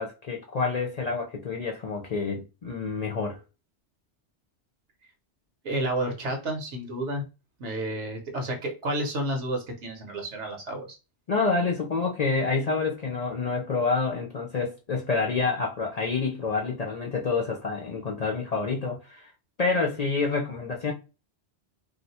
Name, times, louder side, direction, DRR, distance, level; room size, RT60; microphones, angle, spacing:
voice 1, 0.0-3.4 11.3-19.3 19.6-20.9, left 4 dB, 50° left, 0.5 m, -28 dB
voice 2, 5.6-7.2 7.6-11.0, right 1 dB, 75° right, 1.3 m, -30 dB
2.8 x 2.2 x 4.0 m
omnidirectional pair, 1.2 m